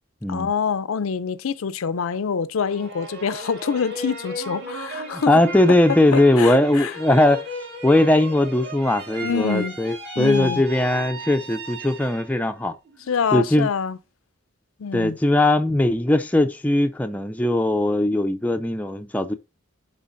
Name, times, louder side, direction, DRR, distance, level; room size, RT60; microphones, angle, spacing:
voice 1, 0.3-5.4 6.1-6.9 9.2-9.8 10.2-10.6 13.1-14.0 14.8-15.2, left 6 dB, 80° left, 0.5 m, -26 dB
sound 1, 2.6-12.4 12.9-13.5, right 1 dB, 50° right, 1.8 m, -36 dB
voice 2, 5.1-7.4 7.8-12.7 13.3-13.7 14.9-19.3, left 1 dB, 5° left, 0.4 m, -19 dB
11.5 x 3.9 x 2.6 m
head